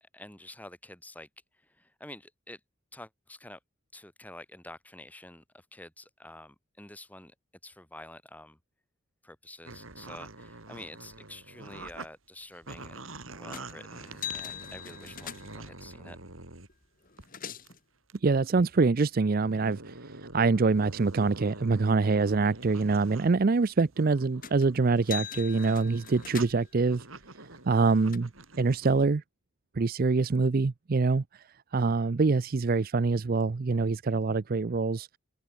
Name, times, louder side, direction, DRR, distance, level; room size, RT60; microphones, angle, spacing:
voice 1, 0.1-1.3 1.8-2.6 2.9-3.6 3.9-7.3 7.6-8.6 9.2-16.2, left 1 dB, 10° left, 4.1 m, -48 dB
sound 1, 9.6-12.1 12.4-16.7 17.2-17.4 17.7-17.8 18.1-18.2 18.6-18.7 19.3-23.3 23.7-29.0, right 2 dB, 80° right, 5.7 m, -46 dB
sound 2, 13.5-13.8 14.1-15.7 16.7-16.8 17.0-17.8 24.4-24.7 25.0-26.8 27.5-28.2, left 9 dB, 40° left, 4.0 m, -41 dB
voice 2, 18.2-20.0 20.3-27.0 27.7-28.3 28.6-29.2 29.8-31.2 31.7-35.1, right 4 dB, 45° right, 0.5 m, -25 dB
open air
head